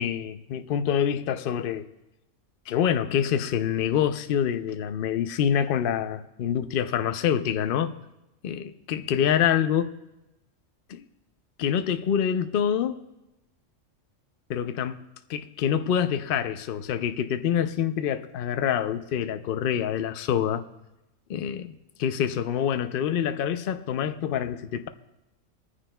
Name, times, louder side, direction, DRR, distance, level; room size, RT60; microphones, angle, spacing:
voice 1, 0.0-1.9 2.7-7.9 8.4-9.9 10.9-11.0 11.6-13.0 14.5-15.0 15.3-20.6 21.3-21.7 22.0-24.9, left 9 dB, 60° left, 0.6 m, -26 dB
26.5 x 9.8 x 2.3 m
omnidirectional pair, 1.3 m